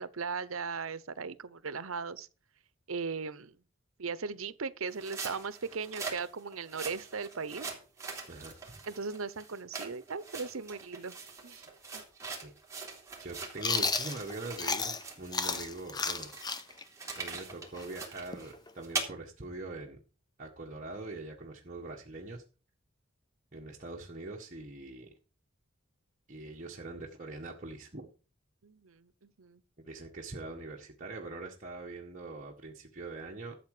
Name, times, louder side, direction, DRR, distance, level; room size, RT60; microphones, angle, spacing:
voice 1, 0.0-2.3 2.9-3.5 4.0-7.7 8.9-11.2 11.4-12.0 28.6-29.6, right 5 dB, 85° right, 0.9 m, -38 dB
sound 1, 4.9-14.7 15.0-19.1, right 4 dB, 15° right, 3.6 m, -42 dB
voice 2, 8.3-8.8 12.4-12.5 13.2-16.3 17.1-20.0 20.4-22.4 23.5-25.1 26.3-28.1 29.8-33.5, right 2 dB, 40° right, 1.7 m, -43 dB
Chewing mastication, 13.6-15.0 15.3-18.9, left 4 dB, 20° left, 0.7 m, -33 dB
13.0 x 7.6 x 5.0 m
head